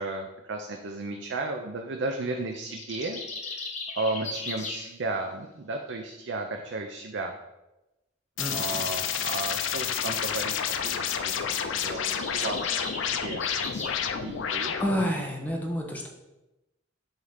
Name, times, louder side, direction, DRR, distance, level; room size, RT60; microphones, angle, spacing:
voice 1, 0.0-3.7 3.9-7.3 8.5-11.5 11.8-12.7 13.0-13.4 14.2-14.7 15.0-15.1, right 2 dB, 70° right, 3 dB, 0.5 m, -34 dB
sound 1, 2.5-4.9 11.5-14.0, left 3 dB, 40° left, 1.0 m, -37 dB
sound 2, 8.4-15.1, left 8 dB, 85° left, 0.5 m, -30 dB
voice 2, 8.4-8.8 14.8-16.1, equal, 10° left, 1 dB, 0.8 m, -29 dB
7.9 x 2.8 x 5.0 m, 0.99 s
head